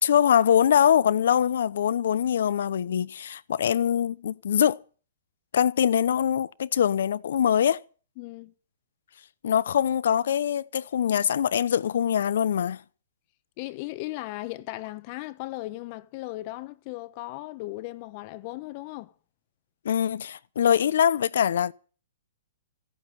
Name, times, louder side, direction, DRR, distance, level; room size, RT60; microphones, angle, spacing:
voice 1, 0.0-4.8 5.5-7.8 9.4-12.8 19.8-21.7, left 9 dB, 70° left, 0.8 m, -23 dB
voice 2, 8.2-8.5 13.6-19.1, left 19 dB, 35° left, 1.0 m, -37 dB
15.0 x 8.9 x 9.2 m
hypercardioid pair, 150°, 0 cm